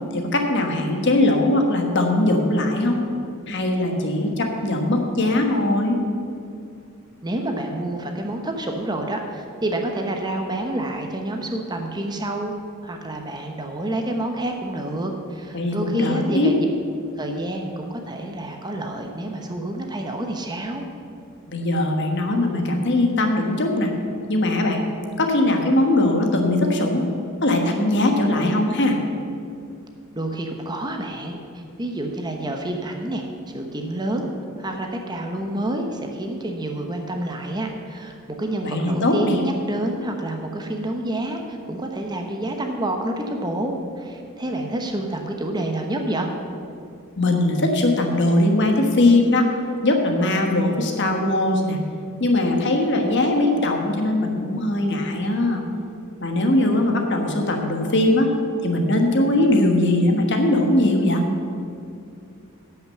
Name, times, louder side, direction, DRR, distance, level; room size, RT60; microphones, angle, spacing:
voice 1, 0.1-3.0 3.5-6.0 15.5-16.5 21.5-23.9 24.3-24.8 25.2-27.0 27.4-29.0 38.6-39.4 47.2-49.5 49.8-51.8 52.2-55.6 56.2-58.3 58.6-61.2, left 1 dB, 55° left, 3 dB, 1.3 m, -20 dB
voice 2, 7.2-12.5 12.8-16.6 17.2-20.8 30.1-34.3 34.6-46.3, right 1 dB, 20° right, 3 dB, 0.8 m, -28 dB
11.0 x 5.8 x 7.7 m, 2.4 s
head